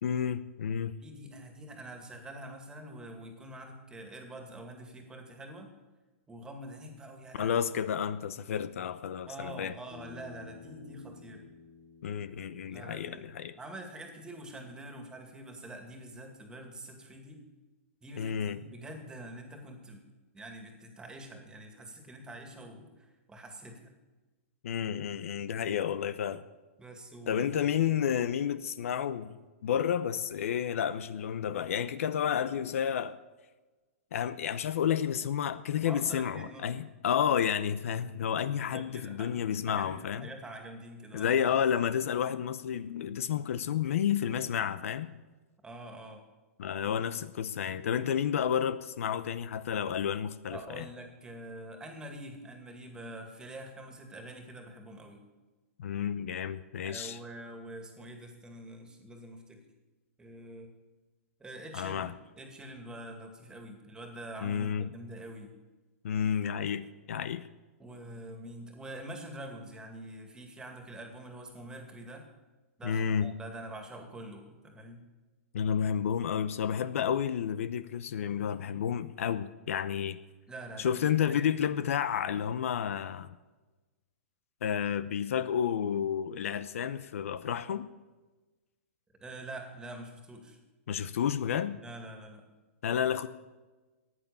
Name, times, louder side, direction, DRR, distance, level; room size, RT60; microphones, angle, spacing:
voice 1, 0.0-0.9 7.3-9.7 12.0-13.5 18.2-18.6 24.6-26.4 27.3-29.4 29.6-33.2 34.1-40.3 41.1-45.2 46.6-50.9 55.8-57.2 61.7-62.1 64.4-64.9 66.0-67.4 72.8-73.3 75.5-80.2 80.8-83.3 84.6-87.9 90.9-91.8 92.8-93.3, left 8 dB, 75° left, 14 dB, 0.8 m, -31 dB
voice 2, 1.0-5.7 6.3-7.5 9.3-11.5 12.7-13.2 13.6-17.4 18.0-20.0 20.3-23.9 26.8-27.5 27.8-27.9 35.8-36.7 38.7-39.3 39.7-41.3 45.6-46.2 50.5-55.2 56.8-59.6 60.2-60.7 61.4-65.5 67.8-72.3 72.8-75.0 80.5-81.5 89.2-90.6 91.8-92.4, right 1 dB, 10° right, 4 dB, 2.3 m, -45 dB
Bass guitar, 9.9-14.2, left 6 dB, 40° left, 3.4 m, -53 dB
14.5 x 9.9 x 7.0 m, 1.2 s
hypercardioid pair, 140°, 7 cm